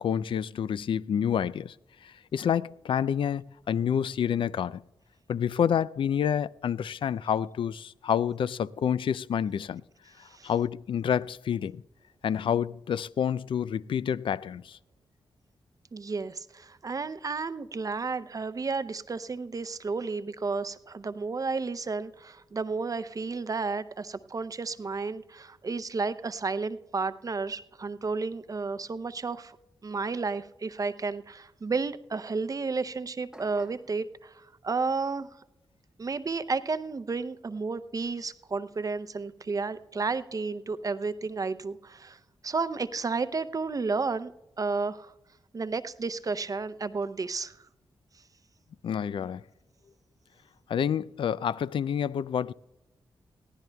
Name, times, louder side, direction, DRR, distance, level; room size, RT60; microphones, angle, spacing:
voice 1, 0.0-1.7 2.0-4.8 5.3-9.8 10.4-11.8 12.2-14.8 48.8-49.4 50.7-52.5, left 8 dB, 70° left, 0.4 m, -28 dB
voice 2, 15.9-29.6 29.8-35.3 36.0-44.3 44.6-45.1 45.5-47.6, right 4 dB, 40° right, 0.6 m, -32 dB
sound 1, 33.3-34.0, right 1 dB, 5° right, 1.1 m, -50 dB
21.5 x 15.0 x 2.3 m
cardioid pair, 65°, 9 cm